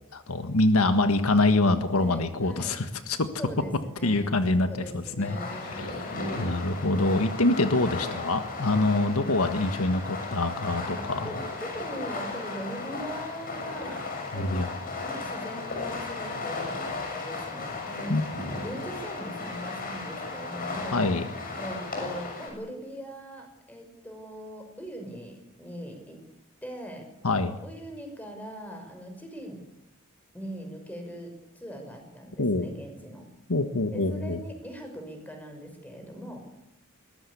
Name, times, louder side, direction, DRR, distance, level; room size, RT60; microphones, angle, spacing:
voice 1, 0.1-3.3 4.0-5.4 5.6-11.3 14.3-14.7 18.1-18.2 20.9-21.3 27.2-27.6 32.4-32.7 33.5-34.4, left 2 dB, 75° left, 8 dB, 1.6 m, -25 dB
voice 2, 1.9-2.8 3.4-4.3 4.6-6.6 7.9-8.2 10.8-14.8 15.0-21.2 21.6-26.2 26.6-27.1 27.6-29.6 30.3-33.3 33.9-36.4, equal, 5° left, 5 dB, 6.1 m, -41 dB
Fireworks, 5.2-22.5, left 3 dB, 40° left, 6.8 m, -35 dB
22.0 x 19.5 x 8.6 m, 0.84 s
head